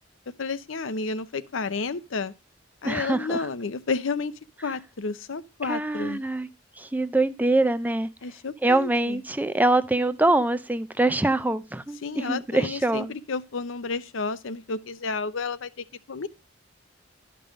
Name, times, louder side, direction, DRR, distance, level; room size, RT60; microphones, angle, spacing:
voice 1, 0.3-2.3 2.8-4.3 4.6-6.2 8.2-9.2 12.0-16.3, left 4 dB, 85° left, 0.7 m, -31 dB
voice 2, 2.8-3.4 5.7-6.5 6.8-8.1 8.6-13.1, right 2 dB, 10° right, 0.4 m, -24 dB
11.5 x 5.5 x 5.0 m
head